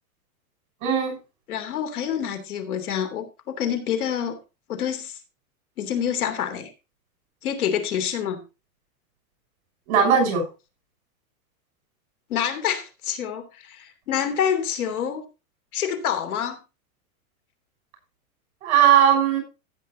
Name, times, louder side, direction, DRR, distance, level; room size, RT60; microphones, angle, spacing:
voice 1, 0.8-1.2 9.9-10.4 18.6-19.4, right 8 dB, 50° right, 6.4 m, -18 dB
voice 2, 1.5-4.4 4.7-5.2 5.8-6.7 7.4-8.4 12.3-15.2 15.7-16.6, left 9 dB, 85° left, 3.2 m, -27 dB
15.5 x 8.7 x 2.8 m
supercardioid pair, 175°, 43 cm